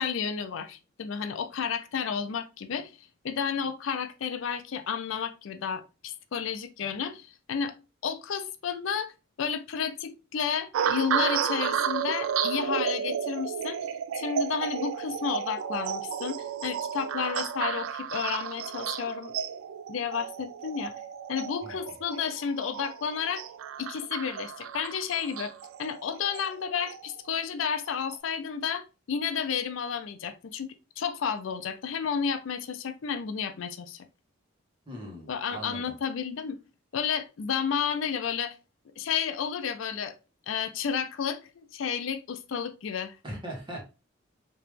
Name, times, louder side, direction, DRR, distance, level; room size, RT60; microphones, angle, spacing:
voice 1, 0.0-2.9 3.2-7.7 8.0-9.1 9.4-13.9 14.1-19.3 19.9-20.9 21.3-23.4 23.8-25.5 25.8-30.7 31.0-34.0 35.3-36.6 36.9-38.5 39.0-40.1 40.5-41.4 41.7-43.1, left 7 dB, 70° left, 0.4 m, -31 dB
sound 1, 10.7-27.2 27.9-28.2, right 8 dB, 90° right, 0.3 m, -32 dB
voice 2, 34.9-36.0 43.2-43.9, right 1 dB, 25° right, 1.3 m, -40 dB
3.3 x 2.9 x 3.2 m
head